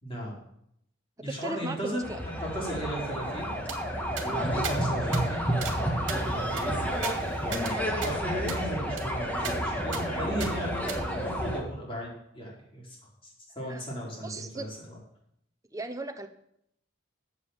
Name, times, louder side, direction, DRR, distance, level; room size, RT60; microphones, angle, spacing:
voice 1, 0.0-0.4 1.2-2.0 2.4-3.5 4.2-6.8 7.4-13.0 13.2-15.0, equal, 25° left, -4 dB, 4.2 m, -36 dB
voice 2, 1.2-2.2 13.7-13.8 14.2-14.7 15.7-16.3, right 2 dB, 15° right, 7 dB, 0.9 m, -37 dB
sound 1, 2.0-11.6, equal, 10° left, 1.7 m, -30 dB
sound 2, 3.7-3.8 4.2-4.3 4.6-4.8 5.1-5.2 5.6-5.8 6.1-7.7 8.0-8.1 8.5-8.6 9.0-9.1 9.4-9.6 9.9-10.0 10.4-10.5 10.9-11.0, right 7 dB, 60° right, 2.2 m, -38 dB
11.0 x 8.2 x 7.3 m, 0.76 s
head